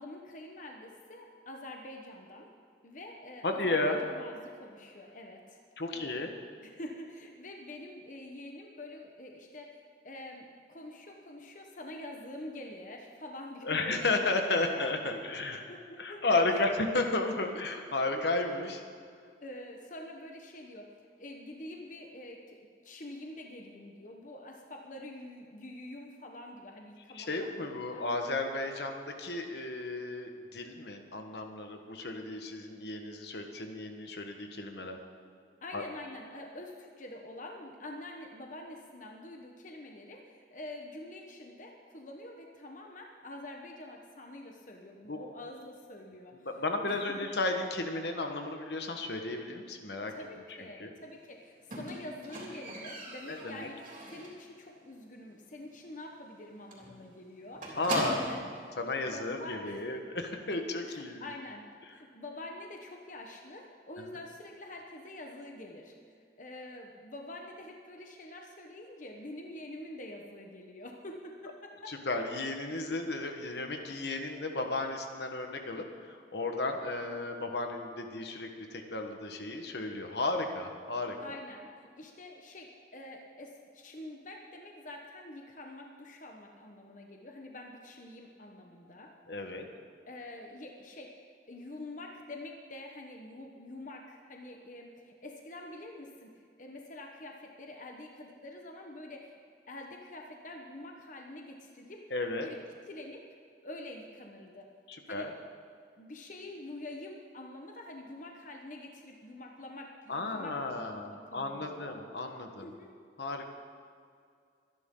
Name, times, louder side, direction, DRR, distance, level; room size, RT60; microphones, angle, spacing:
voice 1, 0.0-2.5 2.8-5.6 5.9-6.1 6.6-14.3 14.7-16.8 17.5-17.6 19.4-20.9 21.2-28.0 35.6-46.5 46.8-47.1 50.1-57.8 58.2-58.7 59.0-59.9 60.8-65.9 66.4-71.9 73.5-73.6 81.2-89.1 90.1-91.2 91.5-99.4 99.7-102.0 102.4-102.6 102.9-103.2 103.6-104.7 105.1-105.3 106.0-112.0 112.6-112.9, left 1 dB, 45° left, 1 dB, 1.2 m, -46 dB
voice 2, 3.4-4.0 5.8-6.3 13.6-15.6 16.0-18.8 27.1-35.0 35.7-35.8 45.1-45.2 46.4-50.1 50.8-50.9 53.3-53.7 57.8-58.2 58.8-61.3 71.9-81.2 89.3-89.6 102.1-102.5 104.9-105.3 110.1-112.7 113.2-113.5, left 2 dB, 60° left, 4 dB, 1.3 m, -33 dB
Squeak, 51.7-54.5 54.8-55.2 55.5-55.6 56.0-56.1 56.3-56.5 56.7-58.5 59.4-59.5, right 1 dB, 45° right, 3.6 m, -39 dB
24.5 x 11.0 x 3.8 m, 2.2 s
head